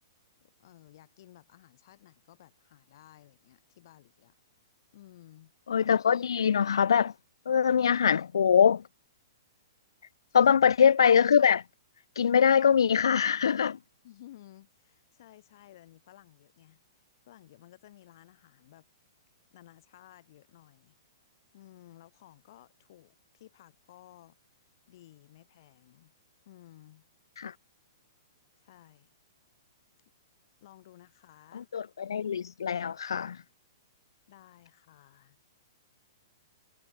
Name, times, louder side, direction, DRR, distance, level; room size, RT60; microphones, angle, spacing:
voice 1, 0.4-4.3 4.9-5.5 10.3-10.6 14.0-16.8 17.3-18.8 19.5-21.0 21.5-24.4 24.9-26.1 26.5-27.1 28.6-29.1 30.6-31.7 34.3-35.4, left 14 dB, 55° left, 4.0 m, -55 dB
voice 2, 5.7-7.1 7.5-8.8 10.3-11.6 12.2-13.8 27.4-27.5 31.5-33.4, left 7 dB, 85° left, 0.4 m, -23 dB
hypercardioid pair, 140°, 2 cm